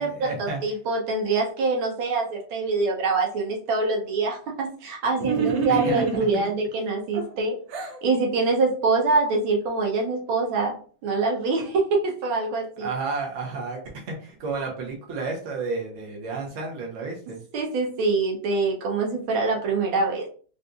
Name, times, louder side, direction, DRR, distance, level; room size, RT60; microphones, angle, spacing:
voice 1, 0.0-0.6 5.7-6.0 12.8-17.4, right 3 dB, 50° right, -1 dB, 1.1 m, -31 dB
voice 2, 0.6-7.6 8.0-10.8 11.0-12.9 17.5-20.3, right 3 dB, 90° right, 0 dB, 1.6 m, -24 dB
sound 1, 5.2-6.5 7.1-8.0, right 5 dB, 65° right, 1.0 m, -27 dB
4.0 x 2.5 x 2.3 m, 0.43 s
omnidirectional pair, 2.1 m